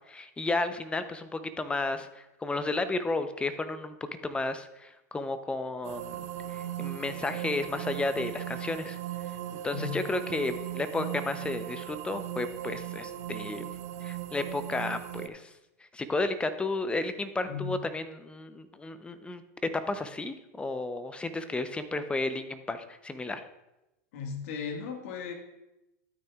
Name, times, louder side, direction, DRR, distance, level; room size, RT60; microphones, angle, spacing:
voice 1, 0.1-6.1 6.5-9.0 9.6-13.7 14.0-15.5 15.9-19.4 19.9-23.4, left 2 dB, 10° left, 11 dB, 0.6 m, -33 dB
sound 1, 5.8-15.3, right 13 dB, 70° right, 0.5 m, -38 dB
voice 2, 9.7-10.0 17.5-17.7 24.1-25.3, left 6 dB, 65° left, 3 dB, 1.7 m, -36 dB
13.0 x 9.2 x 2.4 m, 0.94 s
hypercardioid pair, 100°, 8 cm